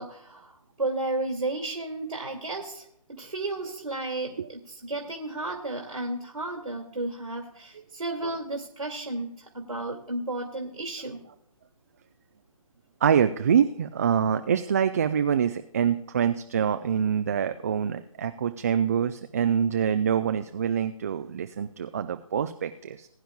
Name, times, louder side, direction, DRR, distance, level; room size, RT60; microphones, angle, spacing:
voice 1, 0.0-11.2, right 2 dB, 85° right, 1 dB, 2.3 m, -33 dB
voice 2, 13.0-23.1, right 8 dB, 30° right, 9 dB, 0.4 m, -25 dB
20.5 x 10.0 x 2.3 m, 0.73 s
figure-of-eight pair, 140°, 18 cm